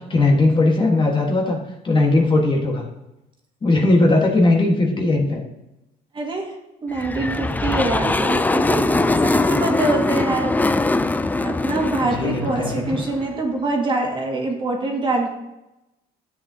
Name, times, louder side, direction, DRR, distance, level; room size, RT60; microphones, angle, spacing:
voice 1, 0.1-1.6 1.8-2.8 3.6-5.4 12.0-13.0, left 2 dB, 30° left, 0 dB, 1.6 m, -18 dB
voice 2, 6.1-6.5 6.8-10.5 11.4-15.3, right 2 dB, 30° right, 1 dB, 1.9 m, -24 dB
sound 1, 6.9-13.4, left 2 dB, 10° left, 0.3 m, -22 dB
12.0 x 7.8 x 2.8 m, 0.93 s
cardioid pair, 110°, 17 cm